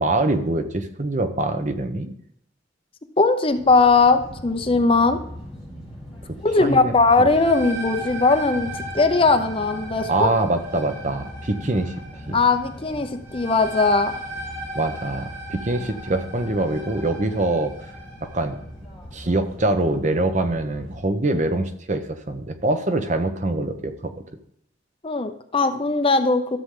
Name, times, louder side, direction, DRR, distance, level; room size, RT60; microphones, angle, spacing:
voice 1, 0.0-2.1 6.6-6.9 10.1-11.9 12.3-12.4 14.7-17.7 18.3-18.6 19.1-24.1, right 2 dB, 40° right, 8 dB, 0.9 m, -24 dB
voice 2, 3.2-5.2 6.4-10.3 12.3-14.1 25.0-26.6, left 3 dB, 30° left, 8 dB, 0.8 m, -19 dB
sound 1, 3.5-21.0, equal, ahead, 4.8 m, -40 dB
sound 2, 7.1-18.5, right 1 dB, 70° right, 4.7 m, -37 dB
13.0 x 7.0 x 3.8 m, 0.71 s
head